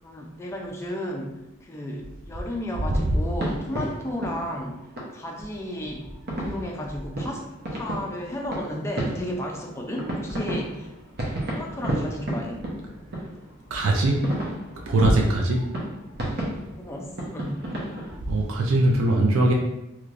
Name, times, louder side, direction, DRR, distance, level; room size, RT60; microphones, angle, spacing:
voice 1, 0.0-1.3 1.6-4.8 5.1-6.1 6.4-10.9 11.5-12.6 15.2-15.3 16.8-17.7, left 1 dB, 15° left, 0 dB, 0.4 m, -33 dB
sound 1, 2.6-18.2, right 1 dB, 50° right, 0.7 m, -33 dB
voice 2, 13.7-14.2 14.9-15.6 18.0-19.5, right 1 dB, 80° right, 0 dB, 0.4 m, -21 dB
3.1 x 2.9 x 2.5 m, 0.94 s
head